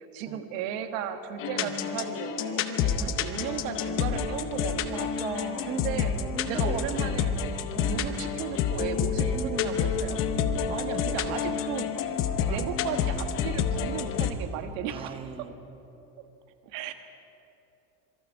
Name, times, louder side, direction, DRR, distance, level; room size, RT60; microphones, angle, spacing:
voice 1, 0.0-5.1 5.7-6.1 6.4-7.3 7.8-10.2 10.7-11.9 12.4-15.1 16.6-16.9, right 9 dB, 55° right, 7 dB, 1.6 m, -35 dB
sound 1, 1.4-14.3, left 7 dB, 25° left, 0.8 m, -29 dB
voice 2, 4.9-7.2 7.7-8.2 9.3-9.8 10.8-11.6 12.5-12.7 14.9-15.5, right 5 dB, 10° right, 7 dB, 0.7 m, -39 dB
26.5 x 24.5 x 4.7 m, 3.0 s
cardioid pair, 175°, 48 cm